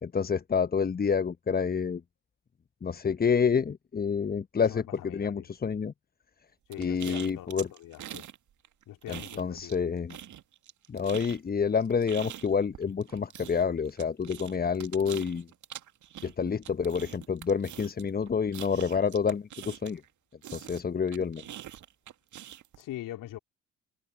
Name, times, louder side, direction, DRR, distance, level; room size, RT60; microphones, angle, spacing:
voice 1, 0.0-2.0 2.8-5.9 6.8-7.7 9.1-10.2 10.9-15.5 16.2-20.0 20.5-21.4, left 6 dB, 25° left, 1.1 m, -28 dB
voice 2, 4.7-5.4 6.7-7.5 7.8-8.3 8.9-9.7 22.8-23.4, left 14 dB, 55° left, 3.7 m, -42 dB
sound 1, 6.7-8.4 8.6-9.8 10.1-20.1 20.4-22.8, right 11 dB, 50° right, 2.3 m, -44 dB
figure-of-eight pair, 50°, 38 cm